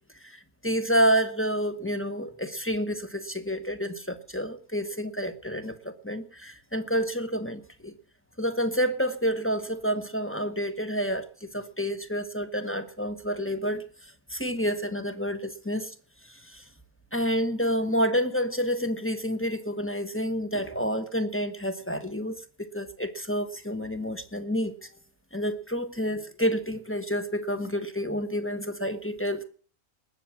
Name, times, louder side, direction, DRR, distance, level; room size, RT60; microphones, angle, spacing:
voice 1, 0.2-7.9 8.4-13.8 14.3-15.9 16.3-16.6 17.1-24.9 25.3-29.4, equal, 10° left, 9 dB, 1.0 m, -29 dB
20.0 x 7.3 x 7.4 m, 0.43 s
omnidirectional pair, 1.5 m